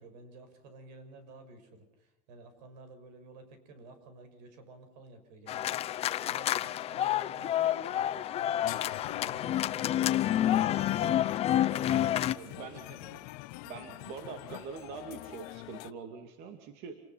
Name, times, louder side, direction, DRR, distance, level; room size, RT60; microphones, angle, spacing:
voice 1, 0.0-6.0 6.2-8.7 9.2-13.3 13.6-14.0, right 3 dB, 85° right, 9 dB, 6.1 m, -53 dB
sound 1, 5.5-12.3, left 12 dB, 30° left, 0.7 m, -29 dB
sound 2, 8.6-15.9, left 21 dB, 65° left, 0.8 m, -45 dB
voice 2, 12.4-13.0 13.6-17.0, right 6 dB, 50° right, 6 dB, 2.5 m, -44 dB
28.0 x 20.0 x 5.7 m, 0.90 s
cardioid pair, 160°, 21 cm